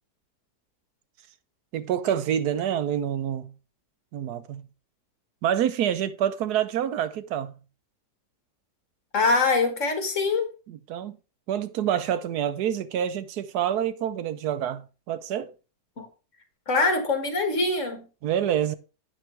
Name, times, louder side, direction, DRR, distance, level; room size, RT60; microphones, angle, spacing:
voice 1, 1.7-3.5 4.1-4.6 5.4-7.5 10.7-11.2 11.5-15.5 18.2-18.8, right 10 dB, 75° right, 1.2 m, -27 dB
voice 2, 9.1-10.5 16.0-16.1 16.7-18.0, left 3 dB, 50° left, 1.9 m, -23 dB
8.7 x 5.6 x 4.5 m
omnidirectional pair, 1.7 m